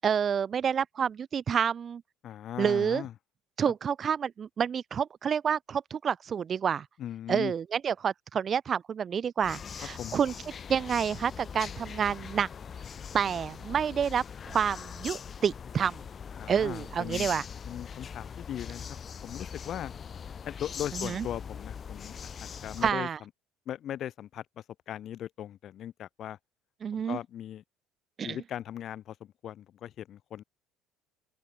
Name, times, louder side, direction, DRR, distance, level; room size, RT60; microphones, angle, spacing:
voice 1, 0.0-2.0 2.6-3.0 3.6-6.9 7.3-10.3 10.7-12.5 13.1-16.0 16.5-17.4 20.9-21.3 22.8-23.2 26.8-27.2 28.2-28.4, right 7 dB, 35° right, 0.4 m, -28 dB
voice 2, 2.2-3.1 7.0-7.5 10.0-10.2 16.4-17.3 17.7-18.9 19.2-19.9 20.4-22.2 22.6-23.1 23.6-24.4 24.9-26.4 26.9-27.6 28.2-30.4, left 11 dB, 45° left, 1.7 m, -38 dB
sound 1, 9.4-22.9, left 7 dB, 30° left, 4.8 m, -41 dB
open air
cardioid pair, 135°, 0 cm